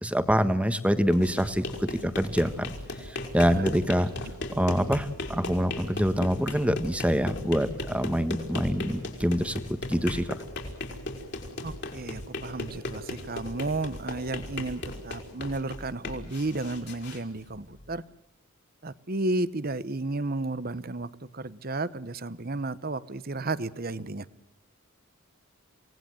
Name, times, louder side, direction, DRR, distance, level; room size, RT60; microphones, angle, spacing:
voice 1, 0.0-2.7 3.0-4.1 4.5-10.4, equal, 5° right, 10 dB, 1.4 m, -26 dB
sound 1, 1.0-18.0, left 2 dB, 50° left, 4.7 m, -37 dB
voice 2, 11.6-18.0 18.8-24.3, right 2 dB, 45° right, 16 dB, 1.0 m, -33 dB
27.5 x 19.0 x 7.9 m, 0.86 s
head